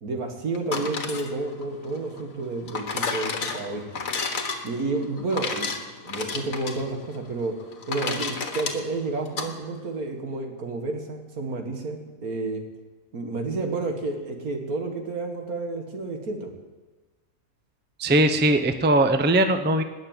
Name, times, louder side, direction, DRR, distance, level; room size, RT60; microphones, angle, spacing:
voice 1, 0.0-4.0 4.6-5.7 6.0-7.6 7.9-12.6 13.1-16.5, right 3 dB, 80° right, 4 dB, 2.3 m, -30 dB
sound 1, 0.5-9.5, left 4 dB, 65° left, 1.7 m, -32 dB
voice 2, 18.0-19.8, right 1 dB, 10° right, 9 dB, 0.5 m, -20 dB
19.5 x 6.5 x 9.0 m, 1.2 s
omnidirectional pair, 1.5 m